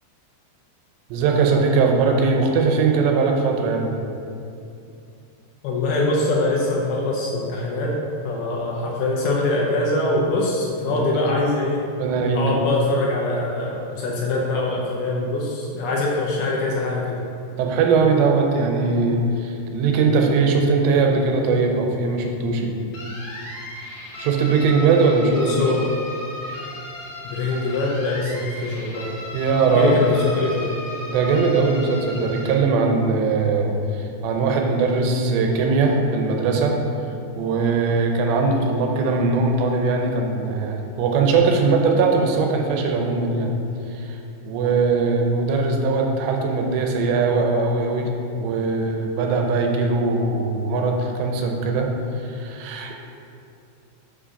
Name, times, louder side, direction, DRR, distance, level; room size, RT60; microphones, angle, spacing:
voice 1, 1.1-3.9 10.9-11.2 12.0-12.5 17.6-22.7 24.2-25.5 29.3-30.0 31.1-36.8 37.4-43.5 43.9-44.2 44.4-48.1 48.4-51.9 52.2-53.0, right 4 dB, 80° right, 2 dB, 2.9 m, -20 dB
voice 2, 5.6-11.9 12.3-17.2 25.4-25.9 27.2-29.2 29.8-30.7, left 2 dB, 75° left, -2 dB, 2.4 m, -23 dB
sound 1, 22.9-32.5, left 1 dB, 60° left, 2.6 m, -36 dB
7.1 x 5.0 x 5.1 m, 2.6 s
omnidirectional pair, 5.0 m